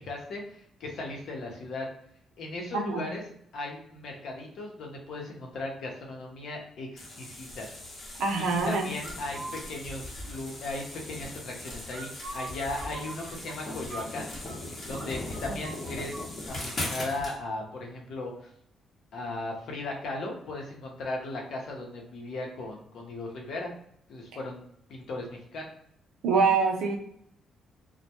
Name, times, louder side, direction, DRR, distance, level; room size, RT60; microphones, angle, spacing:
voice 1, 0.0-1.9 2.4-3.2 3.5-7.7 8.3-14.3 14.9-16.2 16.5-18.5 19.1-23.7 24.1-24.6 24.9-25.7, left 2 dB, 70° left, 0 dB, 0.7 m, -37 dB
voice 2, 2.7-3.1 8.2-8.9 26.2-27.0, right 4 dB, 85° right, 2 dB, 0.5 m, -25 dB
sound 1, 7.0-17.3, left 1 dB, 35° left, 0.8 m, -39 dB
sound 2, 9.0-9.6 11.9-14.6 14.9-15.1 15.3-16.3, right 2 dB, 35° right, 0.6 m, -42 dB
2.1 x 2.1 x 2.8 m, 0.69 s
cardioid pair, 90°, 0 cm